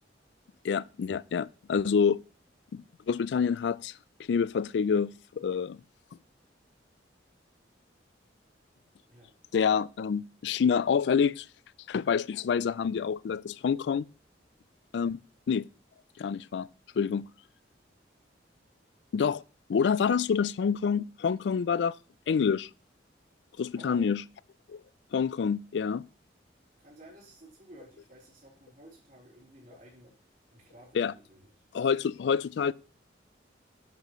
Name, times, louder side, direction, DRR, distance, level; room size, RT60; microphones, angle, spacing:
voice 1, 0.6-2.2 2.7-3.9 4.3-5.8 9.5-11.5 11.9-14.1 14.9-15.2 15.5-15.7 16.2-16.7 17.0-17.3 19.1-19.4 19.7-22.0 22.3-22.7 23.6-24.2 24.7-24.8 25.1-26.0 30.9-31.1 31.7-32.7, left 6 dB, 65° left, 0.3 m, -27 dB
voice 2, 23.7-24.1 26.8-31.4, right 1 dB, 45° right, 3.9 m, -54 dB
11.0 x 7.6 x 3.1 m
head